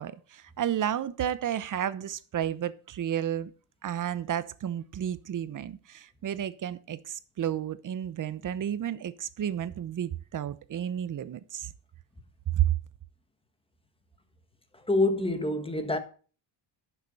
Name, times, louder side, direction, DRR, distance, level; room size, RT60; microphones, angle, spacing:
voice 1, 0.0-3.5 3.8-11.7 12.6-12.8, right 10 dB, 40° right, 0.9 m, -31 dB
voice 2, 14.8-16.0, left 2 dB, 10° left, 1.5 m, -26 dB
11.0 x 7.0 x 5.6 m
cardioid pair, 120°, 47 cm